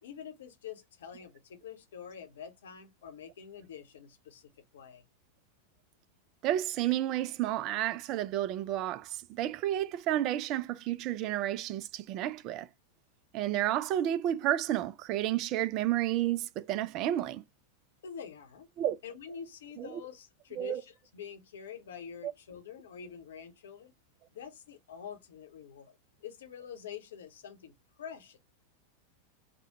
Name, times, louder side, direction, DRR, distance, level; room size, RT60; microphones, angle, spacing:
voice 1, 0.0-5.0 18.0-18.7 19.0-23.9 24.3-28.4, left 7 dB, 60° left, 0.8 m, -46 dB
voice 2, 6.4-12.7 13.3-17.4 18.8-19.0 19.8-19.9 20.6-20.8, right 12 dB, 40° right, 0.3 m, -31 dB
3.4 x 2.2 x 2.8 m
figure-of-eight pair, 90°, 0 cm